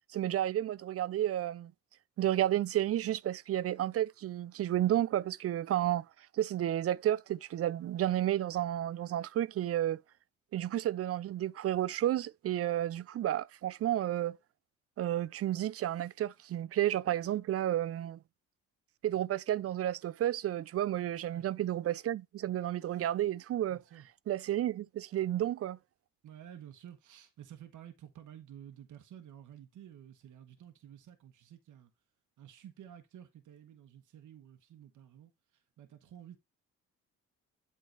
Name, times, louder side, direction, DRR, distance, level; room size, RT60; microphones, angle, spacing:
voice 1, 0.1-1.7 2.2-6.1 6.3-10.0 10.5-14.4 15.0-18.2 19.0-23.8 24.3-25.8, right 12 dB, 45° right, 0.4 m, -31 dB
voice 2, 23.7-24.1 26.2-31.9 32.4-36.4, right 10 dB, 60° right, 1.2 m, -52 dB
8.2 x 3.6 x 4.4 m
supercardioid pair, 60°, 34 cm